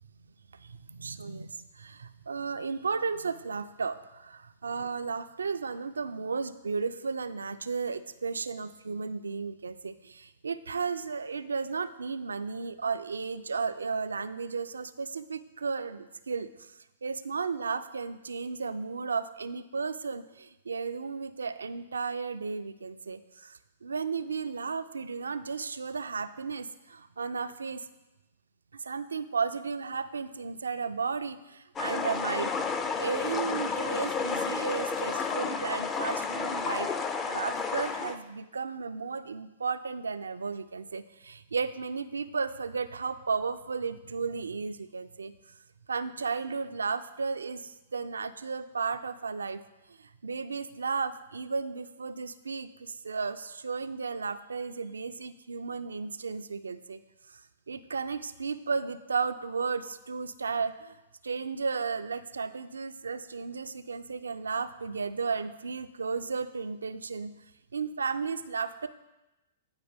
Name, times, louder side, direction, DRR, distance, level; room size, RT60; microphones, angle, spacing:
voice 1, 0.6-16.7 17.0-27.8 28.7-32.6 33.0-45.3 45.9-49.6 50.2-57.0 57.7-61.0 61.2-67.3 67.7-68.9, right 5 dB, 80° right, 11 dB, 0.3 m, -34 dB
sound 1, 31.8-38.2, left 5 dB, 20° left, 0.5 m, -31 dB
8.8 x 4.9 x 3.4 m, 0.99 s
hypercardioid pair, 110°, 0 cm